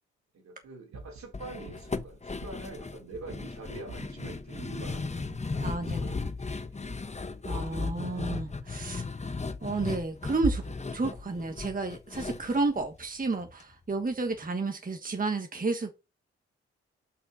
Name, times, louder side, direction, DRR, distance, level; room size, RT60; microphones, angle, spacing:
voice 1, 0.3-7.0, right 2 dB, 70° right, 4.1 m, -45 dB
sound 1, 0.9-1.3 1.7-2.0 2.4-2.7 3.1-3.6 3.9-4.2 4.6-5.0 5.3-5.7 6.0-6.3 6.8-7.1 7.5-7.9 8.3-8.7 10.4-11.0, right 3 dB, 90° right, 1.8 m, -40 dB
sound 2, 1.3-13.6 13.9-14.0 14.3-14.5, left 4 dB, 25° left, 1.0 m, -36 dB
voice 2, 5.6-6.0 7.4-9.3 9.6-10.6 10.9-15.9, right 3 dB, 30° right, 1.3 m, -31 dB
6.9 x 5.7 x 4.2 m
hypercardioid pair, 40°, 29 cm